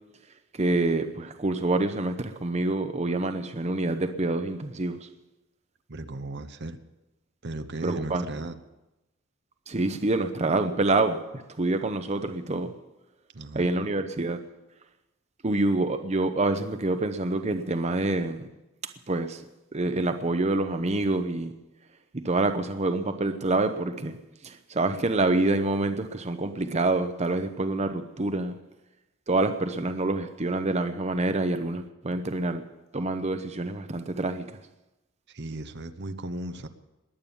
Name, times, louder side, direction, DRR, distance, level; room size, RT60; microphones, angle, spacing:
voice 1, 0.6-5.1 7.8-8.2 9.7-11.2 11.6-12.7 13.5-14.4 15.4-18.5 19.1-19.4 19.7-21.5 22.1-24.2 24.4-28.5 29.3-32.6 32.9-34.5, right 2 dB, 35° right, 8 dB, 0.8 m, -26 dB
voice 2, 5.9-6.8 7.4-8.6 13.3-13.9 35.3-36.7, right 2 dB, 60° right, 10 dB, 0.9 m, -36 dB
21.0 x 8.9 x 7.1 m, 0.98 s
head